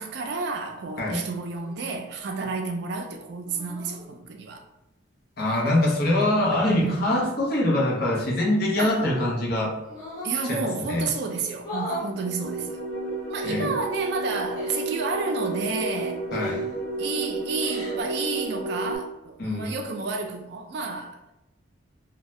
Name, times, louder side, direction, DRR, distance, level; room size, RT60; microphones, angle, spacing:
voice 1, 0.0-4.6 6.2-6.3 6.6-7.2 8.8-9.0 10.2-12.8 13.3-16.3 17.0-21.3, right 4 dB, 55° right, 0.4 m, -31 dB
sound 1, 1.5-1.8 3.5-4.0 5.4-6.5 8.6-9.3 9.8-10.4 11.6-12.1 13.3-13.5 14.5-14.9 16.3-16.8 17.5-18.0, left 1 dB, 20° left, 0.9 m, -38 dB
voice 2, 5.4-9.7 10.5-11.1 13.4-13.7 16.3-16.7 19.4-19.8, left 1 dB, 50° left, 0.7 m, -24 dB
sound 2, 10.0-11.0 11.5-19.0, right 2 dB, 85° left, 0.7 m, -32 dB
2.6 x 2.1 x 3.1 m
head